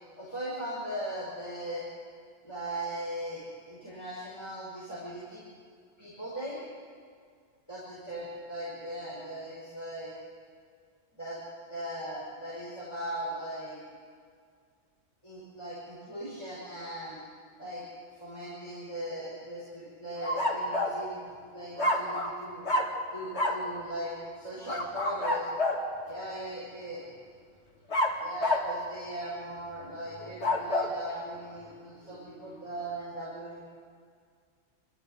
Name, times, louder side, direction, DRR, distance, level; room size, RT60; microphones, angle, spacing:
voice 1, 0.2-1.8 2.4-5.4 6.0-6.6 7.7-10.1 11.2-11.4 11.7-13.8 15.2-17.2 17.6-17.8 18.1-21.2 21.5-22.7 23.1-25.5 26.0-27.0 28.2-33.6, right 1 dB, 20° left, -7 dB, 5.3 m, -39 dB
sound 1, 20.2-21.0 21.8-22.4 22.7-23.0 23.3-23.7 24.7-25.9 27.9-28.7 30.2-30.9, left 1 dB, 60° left, 2.6 m, -28 dB
29.0 x 12.5 x 8.0 m, 2.1 s
omnidirectional pair, 1.3 m